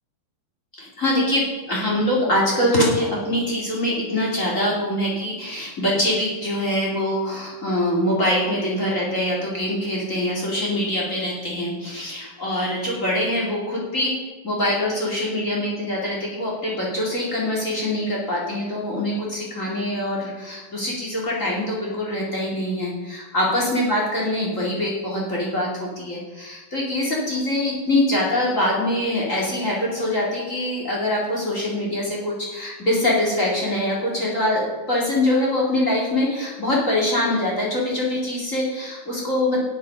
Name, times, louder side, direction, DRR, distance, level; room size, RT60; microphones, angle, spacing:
voice 1, 0.7-14.1 14.4-39.6, left 1 dB, 25° left, -3 dB, 2.0 m, -24 dB
9.5 x 8.5 x 6.0 m, 1.3 s
omnidirectional pair, 4.6 m